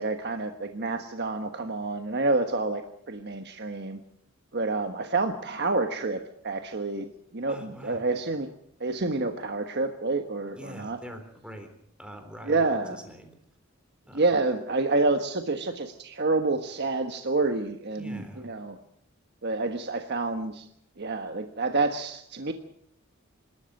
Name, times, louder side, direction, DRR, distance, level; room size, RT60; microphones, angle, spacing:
voice 1, 0.0-2.8 3.1-4.0 4.5-8.5 8.8-11.0 12.4-13.0 14.1-18.8 19.4-20.7 21.0-22.5, right 3 dB, 55° right, 6 dB, 1.4 m, -28 dB
voice 2, 7.5-8.0 10.5-11.7 12.0-13.3 14.1-14.2 18.0-18.5, equal, 5° right, 5 dB, 3.8 m, -44 dB
26.5 x 13.0 x 7.8 m, 0.73 s
head